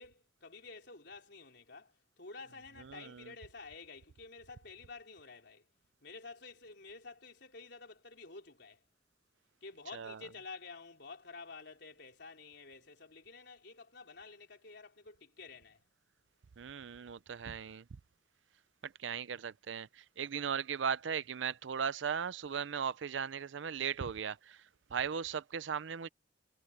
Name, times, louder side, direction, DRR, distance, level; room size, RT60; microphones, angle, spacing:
voice 1, 0.0-5.6 6.0-8.8 9.6-15.8, left 4 dB, 65° left, 4.5 m, -51 dB
voice 2, 2.8-3.3 9.9-10.2 16.6-17.8 18.8-24.6 24.9-26.1, right 7 dB, 80° right, 0.5 m, -37 dB
head